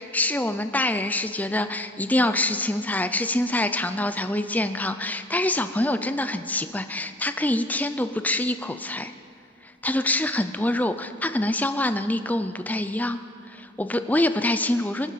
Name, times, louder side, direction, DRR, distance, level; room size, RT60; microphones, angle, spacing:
voice 1, 0.0-9.1 9.6-13.2 13.4-15.1, left 1 dB, 10° left, 10 dB, 0.5 m, -25 dB
25.0 x 9.0 x 5.8 m, 2.7 s
head